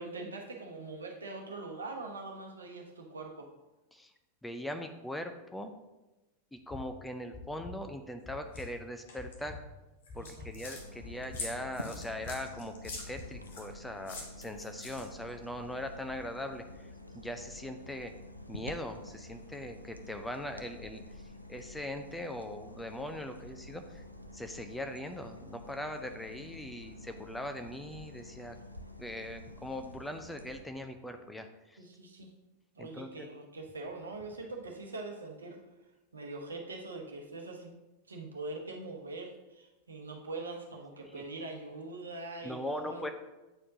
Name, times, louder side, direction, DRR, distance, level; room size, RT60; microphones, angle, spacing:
voice 1, 0.0-3.5 10.2-10.5 31.8-32.3 32.8-35.6 36.1-37.7 38.1-43.1, right 2 dB, 75° right, 2 dB, 0.9 m, -43 dB
voice 2, 4.4-5.7 6.5-9.6 10.1-16.6 17.1-18.1 18.5-21.0 21.5-24.0 24.3-28.6 29.0-31.8 32.8-33.3 41.1-41.3 42.4-43.1, left 1 dB, 5° left, 6 dB, 0.5 m, -40 dB
sound 1, 6.6-6.8 7.3-7.7 8.2-8.7 9.2-9.6 10.1-10.5 11.0-11.4 11.9-12.3 12.8-13.3, left 4 dB, 25° left, 0.8 m, -46 dB
sound 2, 8.5-8.6 9.1-9.4 10.0-10.8 11.3-13.7 14.1-15.3, left 3 dB, 60° left, 1.2 m, -44 dB
sound 3, 10.7-30.6, left 1 dB, 90° left, 0.4 m, -49 dB
8.9 x 4.3 x 2.7 m, 1.0 s
figure-of-eight pair, 90°, 0 cm